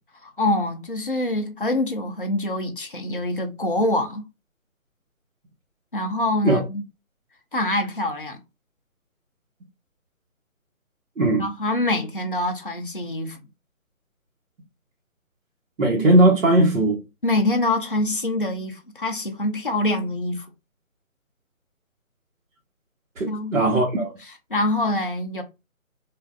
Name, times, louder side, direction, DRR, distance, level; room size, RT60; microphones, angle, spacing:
voice 1, 0.2-4.2 5.9-6.8 7.5-8.4 11.4-13.4 17.2-20.5 23.3-23.7 24.2-25.4, left 1 dB, 40° left, 0.4 m, -25 dB
voice 2, 15.8-17.0 23.2-24.1, right 1 dB, 60° right, 1.0 m, -18 dB
3.3 x 2.5 x 2.4 m
figure-of-eight pair, 170°, 42 cm